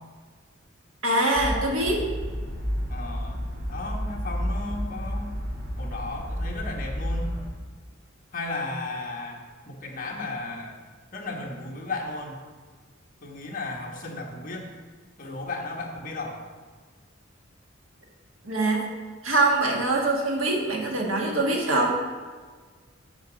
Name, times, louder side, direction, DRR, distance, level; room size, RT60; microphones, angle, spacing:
voice 1, 1.0-2.1 18.4-18.9 19.2-22.0, right 2 dB, 85° right, 0 dB, 1.6 m, -23 dB
sound 1, 1.3-7.5, equal, 65° right, 2.0 m, -31 dB
voice 2, 2.9-3.4 3.7-5.3 5.8-7.3 8.3-10.8 11.1-12.4 13.2-14.7 15.2-16.4, left 2 dB, 45° left, 0 dB, 1.3 m, -35 dB
8.3 x 4.8 x 6.3 m, 1.5 s
head